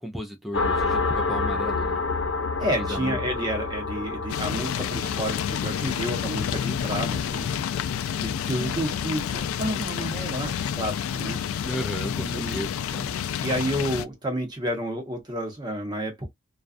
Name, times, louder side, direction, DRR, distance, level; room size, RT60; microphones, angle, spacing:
voice 1, 0.0-2.0 2.8-3.2 11.6-13.1, equal, ahead, 0.3 m, -34 dB
sound 1, 0.5-9.8, left 3 dB, 65° left, 0.8 m, -30 dB
voice 2, 2.6-7.8 8.2-11.4 12.2-12.6 13.4-16.3, equal, 20° right, 0.8 m, -30 dB
sound 2, 4.3-14.0, left 8 dB, 80° left, 0.3 m, -29 dB
2.4 x 2.2 x 2.4 m
head